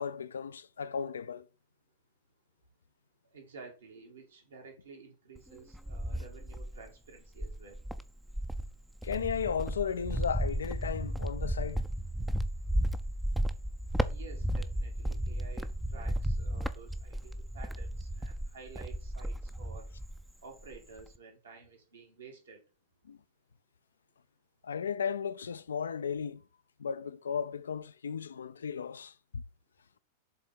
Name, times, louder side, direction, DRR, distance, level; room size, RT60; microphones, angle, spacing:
voice 1, 0.0-1.4 9.0-11.8 23.1-23.2 24.6-26.4 26.8-29.4, left 7 dB, 70° left, 0.4 m, -35 dB
voice 2, 3.3-7.8 14.1-19.9 20.4-22.6, right 4 dB, 70° right, 2.4 m, -52 dB
Cricket, 5.4-6.9 7.4-20.3 20.6-21.2, right 1 dB, 5° right, 0.5 m, -34 dB
7.7 x 3.7 x 5.2 m
figure-of-eight pair, 90°, 0 cm